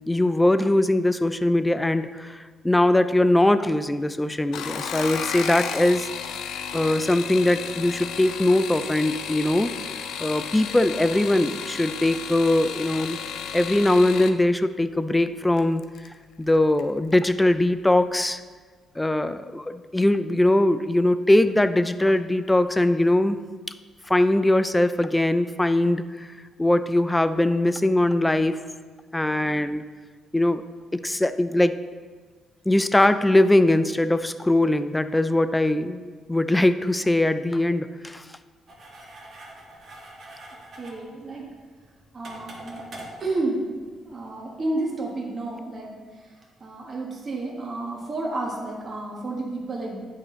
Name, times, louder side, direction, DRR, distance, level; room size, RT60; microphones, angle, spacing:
voice 1, 0.1-6.1 6.7-9.7 10.2-13.2 13.5-15.8 16.4-18.4 19.0-23.4 24.1-26.3 26.6-28.6 29.1-29.8 30.3-30.6 30.9-31.8 32.7-38.2, left 1 dB, 10° left, 12 dB, 0.3 m, -21 dB
sound 1, 4.4-14.4 15.6-16.1 16.5-16.9 17.2-17.3, left 7 dB, 85° left, 0.4 m, -33 dB
sound 2, 38.7-44.3, right 1 dB, 55° right, 1.5 m, -45 dB
voice 2, 40.8-41.5 42.1-42.8 43.2-43.6 44.0-46.3 46.6-50.0, right 2 dB, 40° right, -2 dB, 1.2 m, -31 dB
8.9 x 4.2 x 3.7 m, 1.5 s
cardioid pair, 90°, 0 cm